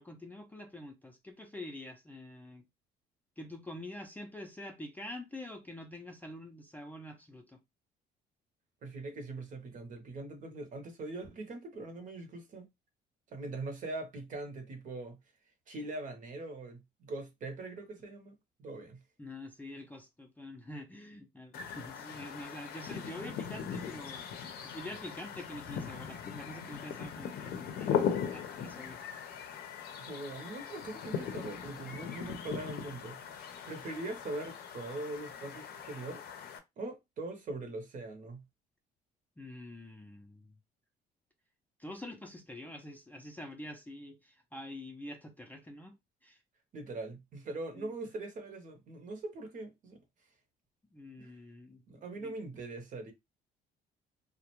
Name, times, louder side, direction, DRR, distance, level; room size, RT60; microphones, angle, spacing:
voice 1, 0.0-2.6 3.4-7.6 19.2-24.2 24.6-29.0 39.4-40.5 41.8-45.9 46.2-46.4 47.8-47.9 50.9-52.3, left 1 dB, 10° left, 0.4 m, -46 dB
voice 2, 8.8-12.7 13.3-15.2 15.7-18.3 18.6-19.0 30.0-33.2 33.7-36.2 36.8-38.4 46.7-50.0 51.2-51.3 51.9-53.1, right 2 dB, 50° right, 0.8 m, -42 dB
sound 1, 21.5-36.6, left 7 dB, 65° left, 0.5 m, -39 dB
2.3 x 2.1 x 2.9 m
cardioid pair, 110°, 17 cm